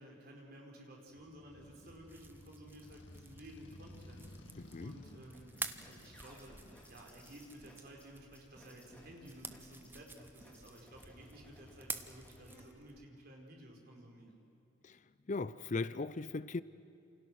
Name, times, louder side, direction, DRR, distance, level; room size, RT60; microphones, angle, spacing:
voice 1, 0.0-4.3 4.8-5.5 5.8-14.3, right 1 dB, 50° right, 5.1 m, -54 dB
Motorcycle, 1.1-7.8, left 1 dB, 65° left, 2.2 m, -56 dB
sound 1, 1.9-13.1, right 4 dB, 10° right, 0.8 m, -50 dB
voice 2, 4.6-5.0 14.8-16.6, left 3 dB, 40° left, 0.5 m, -39 dB
sound 2, 5.3-12.6, equal, 5° left, 4.1 m, -59 dB
29.0 x 28.0 x 6.4 m
head